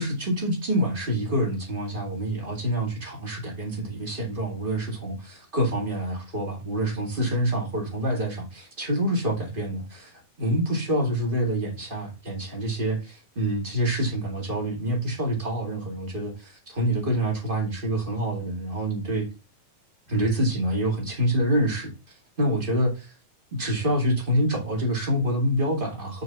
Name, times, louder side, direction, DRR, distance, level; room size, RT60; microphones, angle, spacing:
voice 1, 0.0-19.3 20.1-21.9 22.4-23.1 23.5-26.2, right 1 dB, 20° right, 1.7 m, -26 dB
6.7 x 4.7 x 5.6 m
omnidirectional pair, 4.0 m